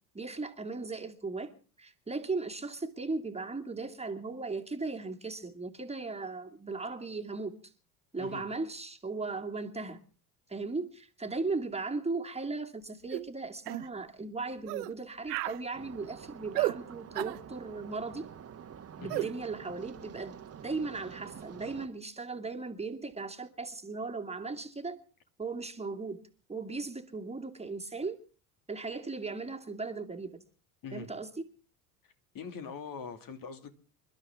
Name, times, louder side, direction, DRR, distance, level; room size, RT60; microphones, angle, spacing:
voice 1, 0.1-1.5 1.8-7.5 8.1-10.0 10.5-18.3 19.0-25.0 25.4-26.2 26.5-28.2 28.7-30.4 30.9-31.5, right 3 dB, 15° right, 2.3 m, -37 dB
sound 1, 13.1-13.3 13.7-13.9 14.7-14.9 15.3-15.6 16.5-16.8 17.1-17.4 19.1-19.3, right 20 dB, 80° right, 0.7 m, -32 dB
sound 2, 15.7-21.9, right 8 dB, 30° right, 1.5 m, -48 dB
voice 2, 32.3-33.7, left 6 dB, 45° left, 2.5 m, -42 dB
28.0 x 12.0 x 3.6 m
hypercardioid pair, 75°, 46 cm